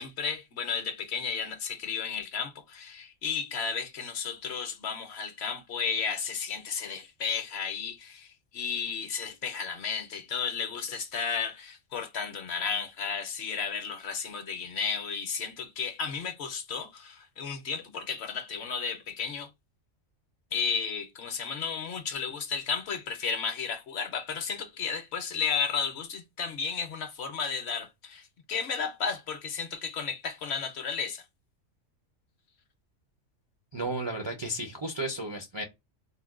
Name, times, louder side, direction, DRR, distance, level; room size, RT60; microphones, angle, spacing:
voice 1, 0.0-8.3 8.5-19.5 20.5-31.2, left 6 dB, 60° left, 0.8 m, -33 dB
voice 2, 33.7-35.6, right 1 dB, 40° right, 0.3 m, -33 dB
3.7 x 2.1 x 2.3 m
omnidirectional pair, 1.4 m